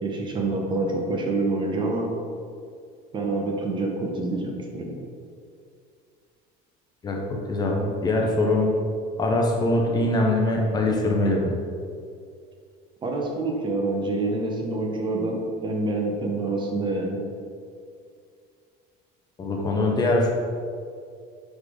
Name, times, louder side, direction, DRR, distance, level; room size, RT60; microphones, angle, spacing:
voice 1, 0.0-2.1 3.1-5.0 13.0-17.2, right 2 dB, 25° right, 0 dB, 0.7 m, -27 dB
voice 2, 7.0-8.7 9.2-11.5 19.4-20.3, left 2 dB, 20° left, 0 dB, 0.6 m, -23 dB
4.9 x 4.0 x 4.9 m, 2.3 s
cardioid pair, 165°, 19 cm